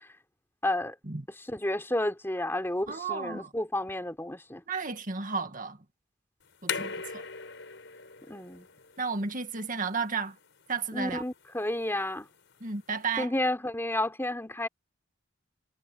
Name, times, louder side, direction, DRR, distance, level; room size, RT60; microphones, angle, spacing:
voice 1, 0.6-0.9 1.5-4.6 8.3-8.7 10.9-12.3 13.2-14.7, left 1 dB, 10° left, 3.4 m, -31 dB
voice 2, 2.9-3.5 4.7-5.8 6.6-7.2 9.0-10.4 10.7-11.2 12.6-13.3, right 5 dB, 45° right, 1.9 m, -33 dB
sound 1, 6.4-13.1, left 6 dB, 65° left, 6.4 m, -41 dB
head